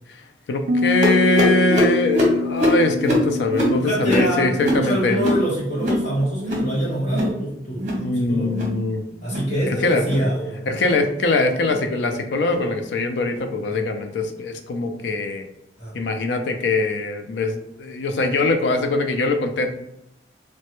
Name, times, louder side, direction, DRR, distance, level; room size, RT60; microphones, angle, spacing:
voice 1, 0.5-5.2 8.0-9.0 9.7-10.2 10.7-15.5 15.9-19.7, left 2 dB, 85° left, 5 dB, 0.4 m, -22 dB
Piano, 0.7-6.3, left 4 dB, 75° right, 0.3 m, -27 dB
sound 1, 1.0-6.1 6.3-6.7 7.0-7.4 7.7-8.1 8.4-8.8 9.2-9.5 10.0-10.3 10.8-11.0 11.6-11.8 12.4-12.6 13.3-13.4 14.2-14.3, left 1 dB, 45° right, 0.8 m, -23 dB
voice 2, 3.7-8.5 9.2-10.7 15.8-15.9, right 1 dB, 40° left, -7 dB, 1.3 m, -25 dB
3.2 x 2.1 x 2.9 m, 0.83 s
head